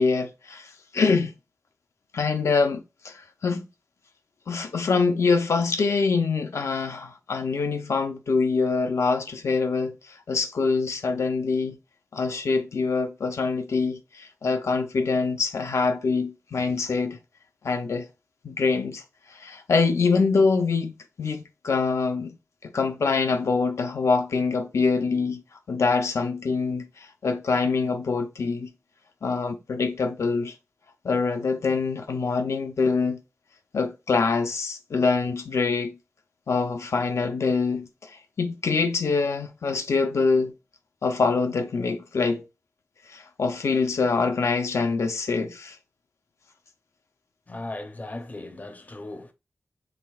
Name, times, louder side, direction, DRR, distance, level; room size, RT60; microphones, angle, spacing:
voice 1, 0.0-1.3 2.1-3.7 4.5-11.8 12.1-17.2 17.6-18.1 18.4-19.0 19.3-22.3 22.6-25.4 25.7-28.7 29.2-30.5 31.0-33.2 33.7-36.0 36.5-40.5 41.0-42.4 43.1-45.8, left 4 dB, 75° left, 0.6 m, -25 dB
voice 2, 47.5-49.3, left 2 dB, 35° left, 0.6 m, -37 dB
4.9 x 3.4 x 2.4 m
wide cardioid pair, 105°, 5 cm